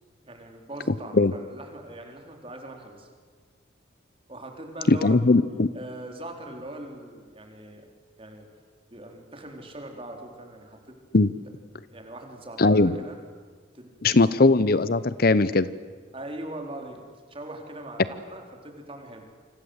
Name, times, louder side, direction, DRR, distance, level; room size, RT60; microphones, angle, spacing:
voice 1, 0.2-3.1 4.3-5.2 5.7-7.9 8.2-8.5 8.9-11.0 11.9-13.2 13.7-14.3 16.1-17.0 17.3-19.3, right 1 dB, 30° right, 3 dB, 4.3 m, -41 dB
voice 2, 4.9-5.7 11.1-11.3 12.6-12.9 14.0-15.7, left 3 dB, 50° left, 16 dB, 0.8 m, -19 dB
28.5 x 25.5 x 8.2 m, 1.6 s
head